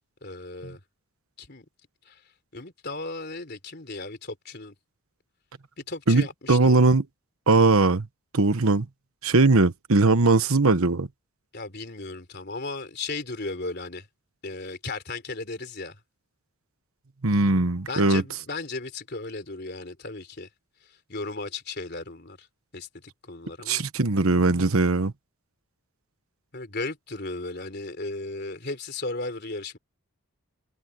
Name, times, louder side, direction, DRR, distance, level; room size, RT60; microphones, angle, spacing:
voice 1, 0.2-0.8 1.4-1.7 2.1-2.2 2.5-4.7 5.8-6.9 11.5-14.1 14.4-16.0 17.9-20.5 20.8-22.5 22.7-23.8 26.5-29.8, left 3 dB, 45° left, 3.6 m, -35 dB
voice 2, 6.1-7.0 7.5-8.1 8.3-8.9 9.2-11.1 17.2-18.2 23.7-25.1, right 3 dB, 70° right, 1.1 m, -20 dB
head